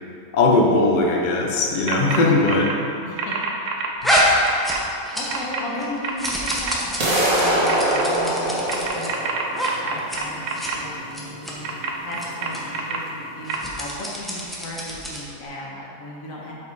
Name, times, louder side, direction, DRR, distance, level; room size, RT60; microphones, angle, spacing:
voice 1, 0.3-2.7 4.0-4.1, left 2 dB, 40° left, -1 dB, 0.8 m, -19 dB
sound 1, 1.9-2.2 2.5-2.7 3.2-4.8 5.3-5.6 6.0-6.7 7.7-8.0 8.7-10.8 11.6-13.0 13.5-13.6, right 5 dB, 70° right, 1.1 m, -27 dB
voice 2, 3.1-3.5 5.1-9.1 9.7-13.5 13.8-16.5, left 1 dB, 75° left, -4 dB, 1.7 m, -35 dB
sound 2, 4.0-5.5 5.8-9.1 9.5-9.7 10.0-10.2 10.5-10.7 11.1-11.5 12.1-12.3 12.5-12.6 13.4-15.3, equal, ahead, 0.9 m, -26 dB
sound 3, 7.0-13.0, right 1 dB, 85° right, 2.0 m, -24 dB
8.2 x 4.9 x 4.7 m, 2.6 s
omnidirectional pair, 1.4 m